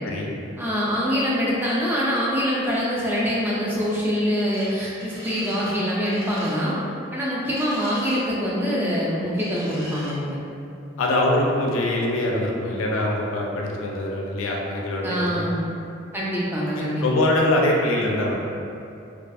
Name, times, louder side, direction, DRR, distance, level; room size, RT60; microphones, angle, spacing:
voice 1, 0.6-6.7 7.1-10.4 15.0-15.6 16.1-17.1, equal, 10° right, -7 dB, 0.3 m, -24 dB
sound 1, 4.5-4.7 5.0-5.8 6.0-6.6 7.5-8.2 9.4-10.1, equal, 85° right, 0.9 m, -40 dB
voice 2, 11.0-15.6 16.8-18.3, left 1 dB, 90° left, -1 dB, 0.4 m, -23 dB
2.3 x 2.3 x 2.5 m, 2.6 s
head